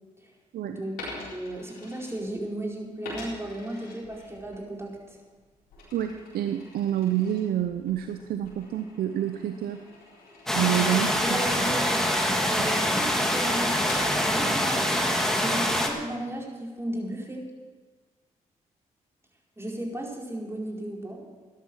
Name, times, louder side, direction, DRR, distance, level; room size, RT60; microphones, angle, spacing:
voice 1, 0.6-5.2 11.2-12.2 12.5-14.0 14.2-14.9 15.3-17.4 19.6-21.2, right 1 dB, 15° right, -2 dB, 4.4 m, -35 dB
Coin (dropping), 1.0-2.6 3.0-4.6 5.0-15.5, left 2 dB, 85° left, 4.4 m, -45 dB
voice 2, 5.9-9.8 10.5-11.4, right 11 dB, 75° right, 8 dB, 0.7 m, -28 dB
sound 1, 10.5-15.9, equal, 5° left, 2.4 m, -25 dB
13.0 x 11.0 x 6.2 m, 1.4 s
supercardioid pair, 45°, 16 cm